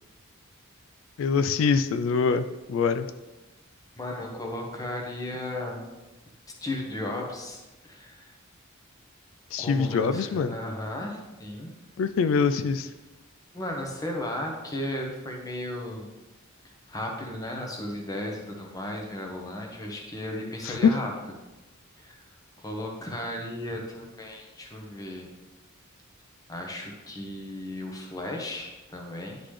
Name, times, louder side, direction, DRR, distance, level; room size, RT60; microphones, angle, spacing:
voice 1, 1.2-3.1 9.5-10.5 12.0-12.9 20.6-20.9, left 5 dB, 65° left, 12 dB, 0.3 m, -24 dB
voice 2, 4.0-5.8 6.6-7.6 7.9-8.3 9.6-11.7 13.5-16.1 16.9-21.1 22.0-22.2 22.6-25.3 26.5-29.4, left 1 dB, 15° left, 0 dB, 0.9 m, -35 dB
10.0 x 3.9 x 3.2 m, 1.1 s
head